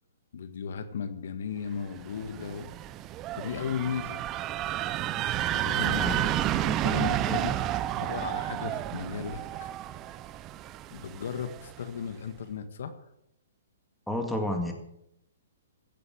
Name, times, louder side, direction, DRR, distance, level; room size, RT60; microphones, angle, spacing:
voice 1, 0.3-2.7 3.3-4.2 5.5-7.5 7.9-9.7 10.9-13.0, left 7 dB, 65° left, 9 dB, 1.8 m, -36 dB
sound 1, 2.0-11.8, right 13 dB, 25° right, 0.6 m, -31 dB
voice 2, 5.7-6.2 7.2-7.4 14.1-14.7, left 1 dB, ahead, 2 dB, 2.1 m, -31 dB
16.0 x 8.5 x 7.4 m, 0.80 s
hypercardioid pair, 150°, 0 cm